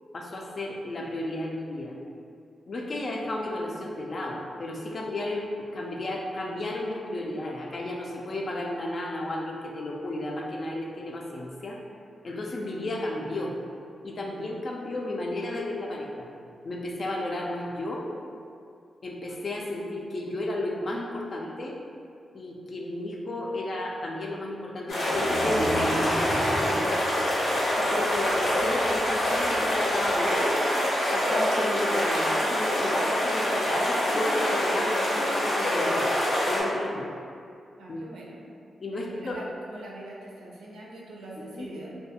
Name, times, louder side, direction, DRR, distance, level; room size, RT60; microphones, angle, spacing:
voice 1, 0.1-1.9 2.7-11.8 12.2-13.5 14.0-16.3 16.6-18.1 19.0-21.8 22.3-26.8 27.8-30.6 31.1-36.1 36.4-37.1 37.9-38.0 38.8-39.4 41.5-41.7, left 1 dB, 55° left, -1 dB, 0.4 m, -33 dB
sound 1, 24.9-36.6, left 1 dB, 85° left, 0.7 m, -25 dB
sound 2, 25.1-28.3, equal, 15° right, 0.4 m, -34 dB
voice 2, 37.8-38.4 38.9-42.0, right 1 dB, 90° right, -4 dB, 0.5 m, -43 dB
2.3 x 2.3 x 2.8 m, 2.4 s
supercardioid pair, 50°, 0 cm